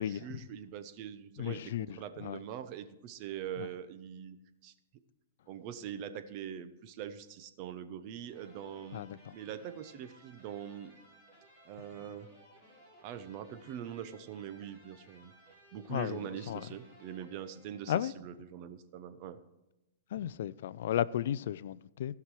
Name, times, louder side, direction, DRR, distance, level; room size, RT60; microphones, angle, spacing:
voice 1, 0.0-4.4 4.6-4.7 5.5-11.0 11.6-12.3 13.0-15.3 15.7-19.4, right 9 dB, 35° right, 0.8 m, -43 dB
voice 2, 1.4-2.4 3.6-3.7 8.9-9.3 15.9-16.2 16.5-16.7 17.9-18.1 20.1-22.1, left 11 dB, 60° left, 0.3 m, -34 dB
sound 1, 8.3-18.3, equal, ahead, 3.6 m, -60 dB
16.0 x 5.9 x 4.8 m
hypercardioid pair, 160°, 0 cm